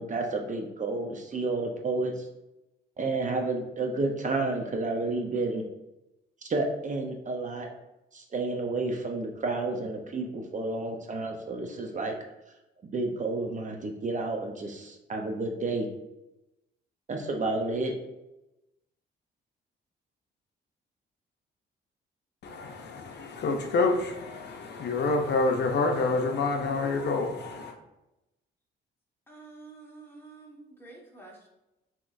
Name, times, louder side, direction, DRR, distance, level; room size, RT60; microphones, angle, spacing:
voice 1, 0.0-2.3 3.0-5.6 6.5-7.7 8.1-12.2 12.9-15.9 17.1-17.9, right 3 dB, 40° right, 0.7 m, -30 dB
voice 2, 22.4-27.7, left 3 dB, 60° left, 0.6 m, -27 dB
voice 3, 29.3-31.5, right 3 dB, 10° left, 1.4 m, -49 dB
5.9 x 2.9 x 2.6 m
cardioid pair, 90°, 20 cm